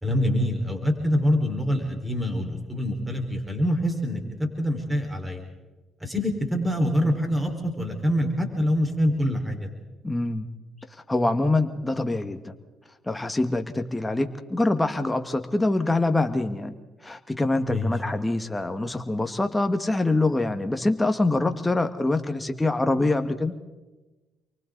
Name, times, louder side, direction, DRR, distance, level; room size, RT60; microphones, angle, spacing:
voice 1, 0.0-5.4 6.0-9.7 17.7-17.9, equal, 10° right, 3 dB, 4.8 m, -25 dB
voice 2, 10.0-10.5 11.1-12.5 13.1-16.8 17.0-23.5, left 2 dB, 15° left, 7 dB, 1.8 m, -25 dB
29.5 x 24.0 x 4.1 m, 1.2 s
supercardioid pair, 65°, 0 cm